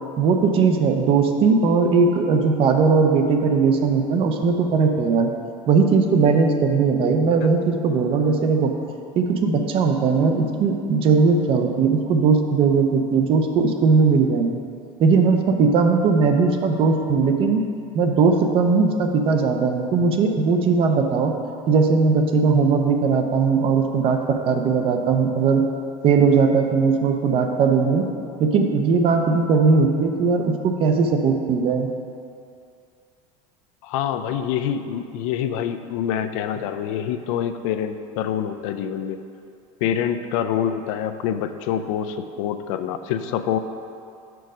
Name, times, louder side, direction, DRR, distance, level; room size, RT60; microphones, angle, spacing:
voice 1, 0.2-5.3 5.7-8.7 9.1-14.6 15.0-17.6 17.9-21.3 21.7-25.7 26.0-28.1 28.4-31.9, right 4 dB, 35° right, 5 dB, 0.5 m, -19 dB
voice 2, 33.8-39.2 39.8-43.6, left 9 dB, 85° left, 8 dB, 0.4 m, -26 dB
5.2 x 4.6 x 6.1 m, 2.4 s
cardioid pair, 165°, 16 cm